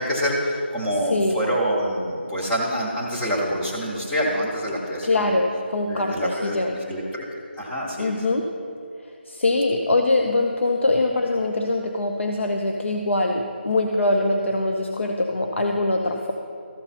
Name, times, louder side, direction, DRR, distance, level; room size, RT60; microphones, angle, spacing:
voice 1, 0.0-5.3 5.9-7.2 7.6-8.1, equal, 5° left, -5 dB, 0.8 m, -26 dB
voice 2, 0.9-1.4 5.0-6.7 8.0-8.5 9.3-16.3, left 2 dB, 90° left, 3 dB, 0.8 m, -23 dB
13.5 x 6.7 x 4.2 m, 2.4 s
figure-of-eight pair, 175°, 6 cm